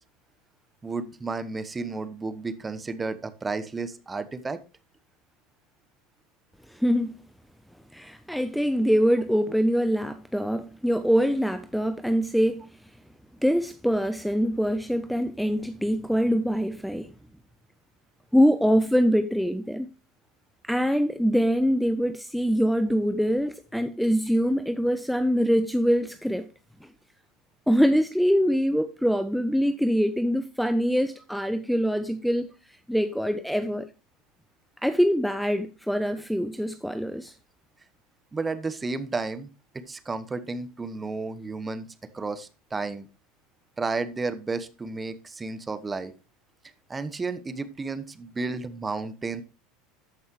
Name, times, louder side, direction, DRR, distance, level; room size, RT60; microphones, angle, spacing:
voice 1, 0.8-4.6 38.3-39.5 39.7-41.9 42.1-43.1 43.8-46.1 46.9-49.4, right 3 dB, 20° right, 1.0 m, -32 dB
voice 2, 6.7-7.2 7.9-12.7 13.4-17.1 18.3-19.9 20.6-26.5 26.8-26.9 27.7-33.9 34.8-37.3, equal, ahead, 0.6 m, -24 dB
13.5 x 5.4 x 3.1 m
hypercardioid pair, 85°, 0 cm